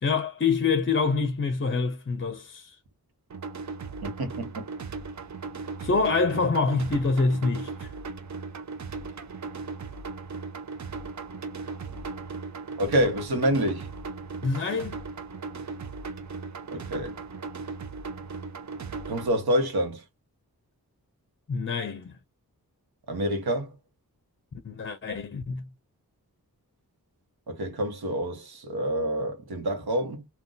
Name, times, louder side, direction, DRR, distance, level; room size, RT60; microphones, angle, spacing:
voice 1, 0.0-2.8 5.8-7.9 14.4-15.0 21.5-22.2 24.6-25.7, left 4 dB, 35° left, 0.5 m, -26 dB
sound 1, 3.3-19.3, right 4 dB, 50° right, 0.5 m, -37 dB
voice 2, 4.0-4.7 12.8-13.9 16.7-17.2 19.1-20.0 23.1-23.7 27.5-30.3, equal, 85° right, 1.0 m, -27 dB
2.5 x 2.3 x 3.7 m
wide cardioid pair, 65°, 36 cm